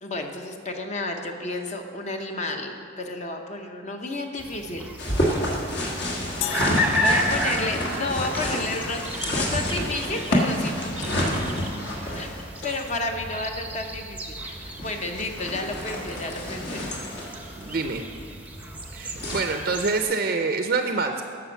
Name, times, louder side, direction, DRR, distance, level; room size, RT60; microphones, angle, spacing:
voice 1, 0.0-2.7 3.0-4.9 7.0-9.0 9.3-11.6 12.1-16.9, left 2 dB, 35° left, 4 dB, 0.8 m, -31 dB
sound 1, 4.4-20.0, equal, 10° right, 0.6 m, -33 dB
sound 2, 5.0-19.4, equal, 55° left, 1.5 m, -29 dB
sound 3, 6.4-8.8, left 12 dB, 85° left, 0.3 m, -37 dB
voice 2, 17.6-18.0 18.9-21.2, right 4 dB, 50° right, 5 dB, 0.5 m, -26 dB
9.8 x 6.0 x 7.1 m, 2.2 s
head